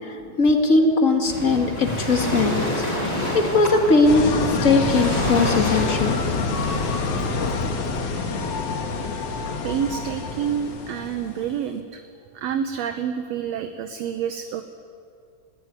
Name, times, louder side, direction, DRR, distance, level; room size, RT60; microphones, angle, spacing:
voice 1, 0.0-4.2 4.5-6.2, left 3 dB, 30° left, 3 dB, 1.8 m, -20 dB
Waves surf, 1.2-7.5, equal, 10° left, 4.7 m, -28 dB
sound 1, 4.1-11.5, left 4 dB, 60° left, 2.6 m, -27 dB
voice 2, 9.6-12.0 12.4-14.6, right 8 dB, 70° right, 7 dB, 1.8 m, -28 dB
20.0 x 15.5 x 9.7 m, 2.4 s
omnidirectional pair, 3.3 m